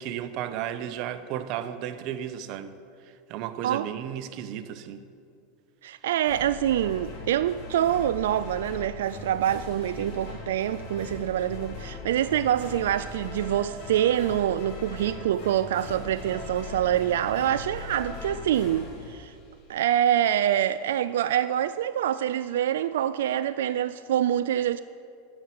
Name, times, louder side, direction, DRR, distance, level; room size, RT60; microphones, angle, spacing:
voice 1, 0.0-2.7 3.3-5.1 10.0-10.1, right 10 dB, 55° right, 0.9 m, -34 dB
voice 2, 5.8-19.4 19.7-24.8, right 11 dB, 75° right, 0.3 m, -26 dB
sound 1, 6.2-19.9, left 3 dB, 55° left, 2.8 m, -40 dB
12.5 x 7.4 x 9.2 m
hypercardioid pair, 95°, 0 cm